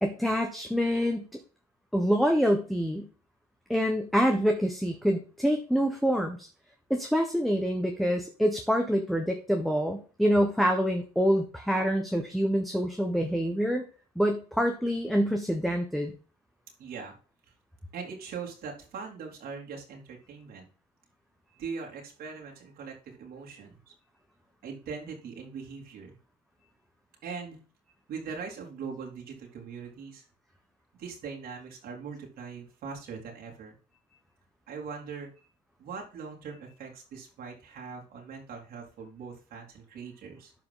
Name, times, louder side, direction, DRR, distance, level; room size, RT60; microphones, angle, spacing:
voice 1, 0.0-1.3 1.9-3.1 3.7-6.5 6.9-13.8 14.1-16.1, equal, ahead, 3 dB, 1.3 m, -26 dB
voice 2, 16.8-17.2 17.9-20.7 21.6-23.9 24.6-26.2 27.2-27.6 28.1-30.3 31.0-33.8 34.7-35.3 35.8-40.5, right 5 dB, 65° right, 0 dB, 3.3 m, -41 dB
12.0 x 4.9 x 4.0 m, 0.37 s
cardioid pair, 110°, 17 cm